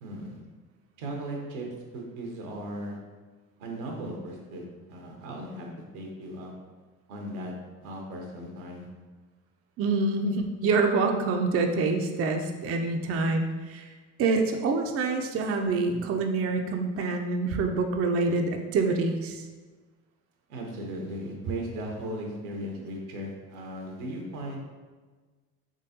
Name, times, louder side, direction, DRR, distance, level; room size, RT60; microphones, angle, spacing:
voice 1, 0.0-0.4 1.0-1.7 1.9-3.0 3.6-4.6 4.9-5.7 5.9-6.5 7.1-7.5 7.8-8.9 20.5-24.6, right 1 dB, 80° right, 0 dB, 0.9 m, -37 dB
voice 2, 9.8-13.9 14.2-19.4, right 3 dB, 35° right, 4 dB, 0.4 m, -26 dB
3.7 x 3.3 x 2.7 m, 1.4 s
hypercardioid pair, 60°, 42 cm